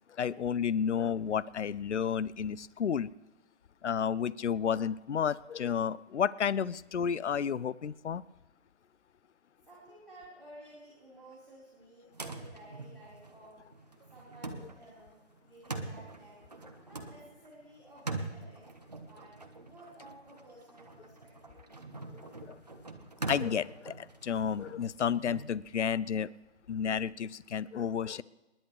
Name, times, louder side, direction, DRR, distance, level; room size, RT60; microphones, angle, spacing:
voice 1, 0.2-3.1 3.8-8.2 22.5-22.6 23.3-26.3 26.7-28.2, left 7 dB, 70° left, 20 dB, 0.5 m, -31 dB
voice 2, 9.6-13.6 14.1-16.4 16.8-18.6 19.0-21.6, right 1 dB, ahead, -14 dB, 1.2 m, -54 dB
sound 1, 12.1-25.4, right 2 dB, 35° right, 0.9 m, -43 dB
28.5 x 10.5 x 3.3 m, 1.1 s
figure-of-eight pair, 175°, 36 cm